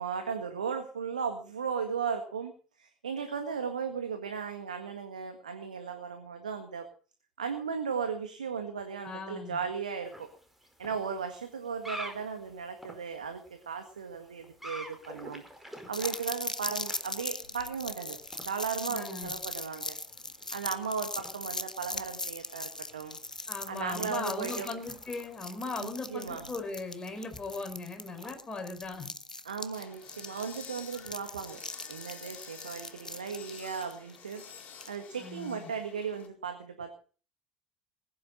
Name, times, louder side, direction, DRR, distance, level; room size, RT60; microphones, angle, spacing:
voice 1, 0.0-2.5 2.8-6.9 7.4-10.3 10.8-15.4 15.9-20.0 20.5-23.2 23.7-24.7 25.8-26.5 29.4-31.6 31.9-34.4 34.9-36.9, right 6 dB, 75° right, 7 dB, 1.7 m, -36 dB
voice 2, 9.0-9.6 18.9-19.3 23.5-29.1 35.2-35.7, left 3 dB, 20° left, 4 dB, 5.2 m, -38 dB
sound 1, 10.0-28.3, equal, 5° right, 5.1 m, -50 dB
sound 2, 15.9-35.0, left 2 dB, 90° left, 0.7 m, -40 dB
sound 3, 29.7-36.3, left 7 dB, 40° left, 4.4 m, -50 dB
20.0 x 10.5 x 5.3 m, 0.40 s
figure-of-eight pair, 65°, 4 cm